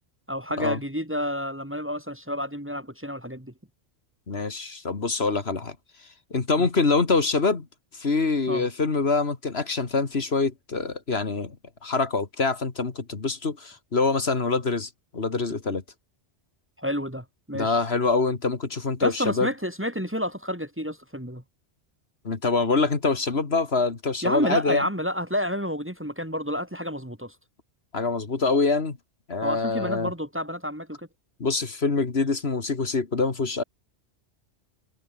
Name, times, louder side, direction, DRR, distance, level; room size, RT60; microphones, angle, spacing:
voice 1, 0.3-3.5 6.6-6.7 8.5-8.7 16.8-17.8 19.0-21.4 24.2-27.4 29.4-31.1, equal, 10° right, 2.2 m, -29 dB
voice 2, 4.3-5.8 6.3-7.7 7.9-11.6 11.8-15.8 17.5-19.5 22.2-24.8 27.9-29.0 29.3-30.1 31.4-33.6, left 4 dB, 65° left, 2.3 m, -25 dB
omnidirectional pair, 1.2 m